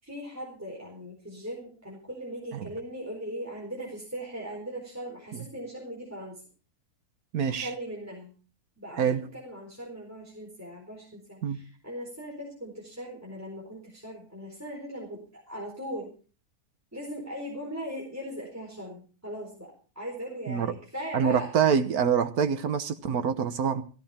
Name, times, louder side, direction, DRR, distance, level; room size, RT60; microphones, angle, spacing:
voice 1, 0.0-6.4 7.5-8.3 8.8-16.1 16.9-21.5, equal, 10° right, 4.3 m, -39 dB
voice 2, 7.3-7.7 9.0-9.2 11.4-11.6 20.5-20.7 21.1-23.8, right 7 dB, 85° right, 1.6 m, -25 dB
16.0 x 15.5 x 4.3 m
omnidirectional pair, 1.6 m